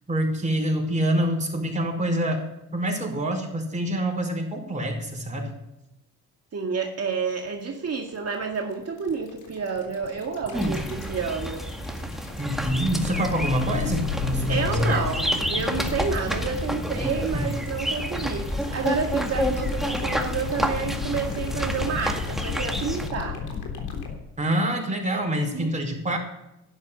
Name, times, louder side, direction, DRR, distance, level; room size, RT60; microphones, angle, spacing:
voice 1, 0.1-2.4 2.7-5.5 12.4-15.1 17.3-17.5 24.4-26.2, right 1 dB, 20° right, 2 dB, 5.0 m, -26 dB
voice 2, 6.5-11.6 14.5-23.4 25.5-25.7, right 5 dB, 40° right, 2 dB, 2.0 m, -29 dB
sound 1, 7.5-24.1, left 6 dB, 80° left, 3.6 m, -34 dB
sound 2, 10.5-23.1, equal, ahead, 2.0 m, -29 dB
12.0 x 11.0 x 7.0 m, 0.91 s
cardioid pair, 85°, 37 cm